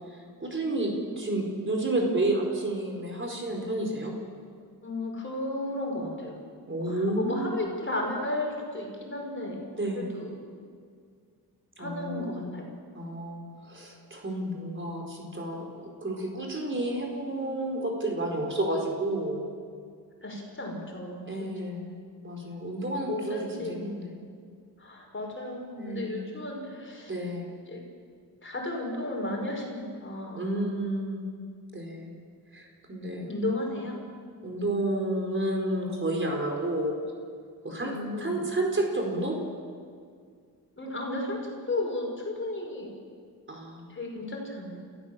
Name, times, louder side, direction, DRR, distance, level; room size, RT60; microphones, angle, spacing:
voice 1, 0.0-4.1 6.7-7.6 9.8-10.0 11.8-12.5 12.9-19.4 21.3-21.9 22.2-24.1 25.8-26.2 27.1-27.5 30.3-31.2 31.7-32.1 32.5-33.3 34.4-37.0 37.6-39.3 43.5-43.9, right 1 dB, 35° right, 1 dB, 4.6 m, -31 dB
voice 2, 4.8-6.4 6.8-9.6 10.0-10.4 11.8-12.7 20.2-21.5 21.8-21.9 23.0-24.0 24.8-27.1 27.7-27.8 28.4-30.5 33.3-34.0 37.8-38.5 40.8-42.9 43.9-44.8, left 2 dB, 35° left, 0 dB, 5.6 m, -34 dB
29.5 x 15.0 x 7.6 m, 2.1 s
cardioid pair, 90°, 36 cm